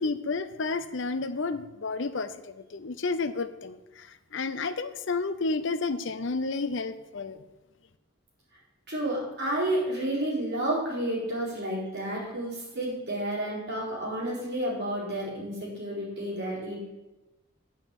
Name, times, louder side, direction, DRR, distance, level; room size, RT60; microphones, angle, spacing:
voice 1, 0.0-4.1 4.3-7.4, left 3 dB, 60° left, 12 dB, 0.6 m, -31 dB
voice 2, 8.9-16.8, right 1 dB, 50° right, -5 dB, 4.1 m, -31 dB
9.0 x 5.6 x 8.2 m, 1.1 s
head